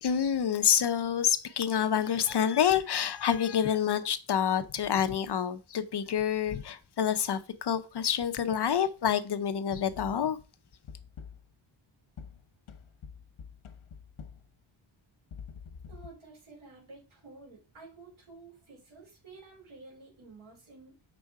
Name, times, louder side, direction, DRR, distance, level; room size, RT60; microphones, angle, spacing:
voice 1, 0.0-10.4, left 8 dB, 55° left, 0.7 m, -27 dB
sound 1, 10.0-10.4 10.9-11.6 12.2-14.6 15.3-16.1, left 6 dB, 90° left, 1.0 m, -47 dB
voice 2, 15.9-20.9, right 3 dB, 80° right, 4.2 m, -51 dB
6.4 x 5.1 x 4.7 m
wide cardioid pair, 165°, 48 cm